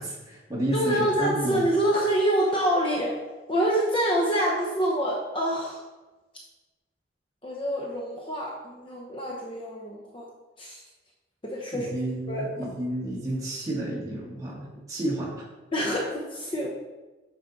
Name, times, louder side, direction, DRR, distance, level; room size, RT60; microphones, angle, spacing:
voice 1, 0.0-1.6 11.7-15.4, right 1 dB, 20° right, -6 dB, 2.3 m, -31 dB
voice 2, 0.7-3.2 3.5-5.8 7.4-10.3 10.6-10.8 11.4-11.9 12.3-12.5 15.7-16.7, right 1 dB, 25° left, -2 dB, 0.9 m, -26 dB
9.0 x 5.1 x 4.1 m, 1.2 s
head